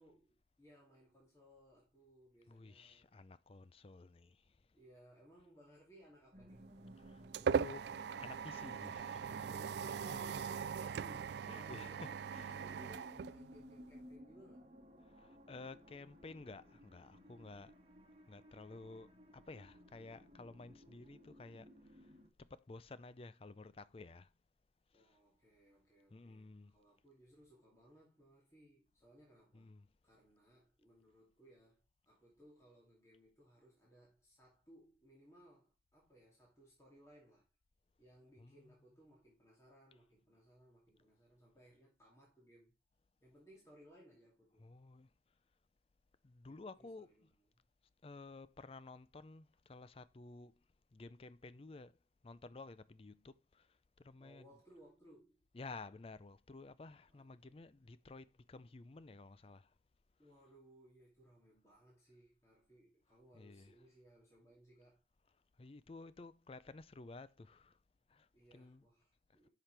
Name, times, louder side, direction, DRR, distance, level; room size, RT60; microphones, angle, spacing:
voice 1, 0.0-3.1 4.7-6.7 9.4-14.7 24.9-29.7 30.0-37.5 38.0-42.7 43.2-44.7 46.4-47.3 54.2-55.4 57.1-57.7 60.2-65.0 68.3-69.5, equal, 15° left, 2.6 m, -64 dB
voice 2, 2.5-4.7 6.9-9.5 9.9-10.0 11.1-11.2 11.5-12.6 15.0-17.7 18.3-22.1 22.4-24.3 24.9-25.2 26.1-26.7 29.5-29.9 38.4-38.6 44.6-45.1 46.2-47.1 48.0-50.6 50.9-52.0 52.2-54.5 55.5-59.7 63.3-63.7 65.6-67.8 68.1-68.3 68.5-68.8, left 3 dB, 30° left, 0.4 m, -53 dB
sound 1, 6.3-22.3, equal, 35° right, 1.6 m, -59 dB
sound 2, 6.6-14.0, right 6 dB, 70° right, 0.3 m, -40 dB
10.5 x 5.8 x 3.3 m
head